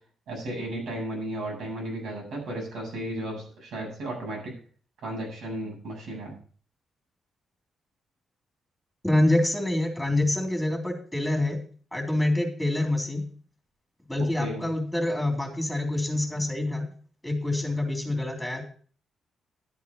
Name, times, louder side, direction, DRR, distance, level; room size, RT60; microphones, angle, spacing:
voice 1, 0.3-4.5 5.0-6.3 14.3-14.7, right 1 dB, 85° right, -1 dB, 7.8 m, -34 dB
voice 2, 9.0-11.6 11.9-13.2 14.1-16.9 17.2-18.6, left 1 dB, ahead, 3 dB, 3.2 m, -26 dB
11.5 x 8.4 x 5.5 m, 0.42 s
cardioid pair, 115°, 0 cm